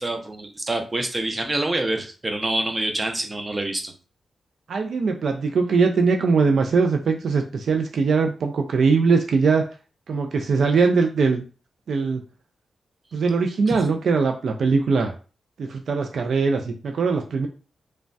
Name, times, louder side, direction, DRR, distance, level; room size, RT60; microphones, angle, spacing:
voice 1, 0.0-3.9 13.7-13.8, right 2 dB, 25° right, 4 dB, 0.6 m, -26 dB
voice 2, 4.7-9.7 10.1-11.4 11.9-12.2 13.1-15.1 15.6-17.5, right 4 dB, 70° right, 4 dB, 0.3 m, -21 dB
3.0 x 2.2 x 2.6 m, 0.35 s
cardioid pair, 100°, 0 cm